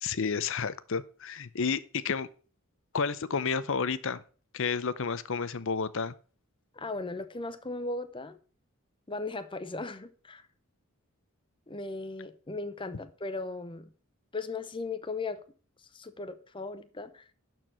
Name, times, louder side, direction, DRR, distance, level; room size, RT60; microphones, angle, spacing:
voice 1, 0.0-2.3 2.9-4.2 4.5-6.1, left 5 dB, 60° left, 0.6 m, -31 dB
voice 2, 6.7-8.4 9.1-10.4 11.7-13.9 14.3-15.4 15.9-17.2, left 3 dB, 20° left, 0.7 m, -37 dB
11.5 x 4.6 x 6.1 m
head